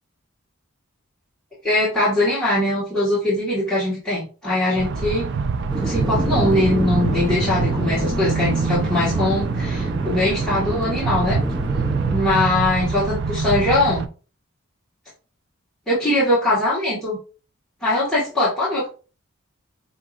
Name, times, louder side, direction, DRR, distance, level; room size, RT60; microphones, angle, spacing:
voice 1, 1.6-5.3 5.8-11.4 12.1-14.1 15.9-17.2 17.8-18.9, left 1 dB, 5° left, -11 dB, 1.4 m, -21 dB
sound 1, 4.8-14.1, right 5 dB, 55° right, 0.3 m, -25 dB
sound 2, 5.7-12.2, right 1 dB, 20° right, 0.7 m, -26 dB
5.6 x 2.8 x 2.4 m, 0.36 s
head